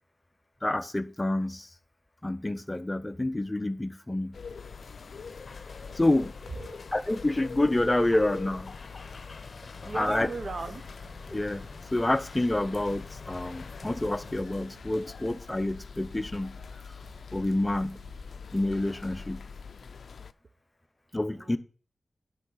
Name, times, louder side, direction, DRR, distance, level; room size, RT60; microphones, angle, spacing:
voice 1, 0.6-1.7 2.2-4.4 6.0-6.3 6.9-8.7 9.9-10.3 11.3-11.7 11.9-16.6 17.3-18.0 18.5-19.4 21.1-21.6, left 1 dB, 20° left, 0.5 m, -28 dB
sound 1, 4.3-20.3, left 5 dB, 80° left, 0.4 m, -44 dB
sound 2, 4.6-14.4, left 3 dB, 55° left, 0.8 m, -48 dB
voice 2, 9.5-10.8 21.3-21.6, right 3 dB, 55° right, 0.6 m, -38 dB
sound 3, 11.0-18.2, right 2 dB, 80° right, 2.2 m, -55 dB
10.5 x 4.6 x 4.0 m
wide cardioid pair, 105°, 0 cm